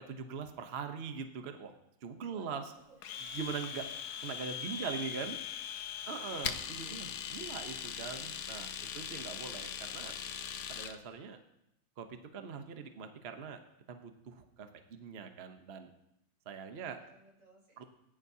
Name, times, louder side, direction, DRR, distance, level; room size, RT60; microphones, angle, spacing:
voice 1, 0.0-1.7 2.0-2.7 3.3-3.9 4.2-5.5 6.1-10.1 10.7-11.4 12.0-13.6 13.9-15.9 16.5-17.0 17.8-17.9, right 6 dB, 50° right, 7 dB, 0.7 m, -42 dB
voice 2, 2.2-3.2 3.9-4.0 4.4-4.9 6.1-7.2 16.7-17.8, right 2 dB, 70° right, -3 dB, 4.2 m, -62 dB
Domestic sounds home sounds, 3.0-11.0, left 8 dB, 70° left, 1.1 m, -40 dB
19.5 x 10.0 x 2.7 m, 0.83 s
omnidirectional pair, 2.1 m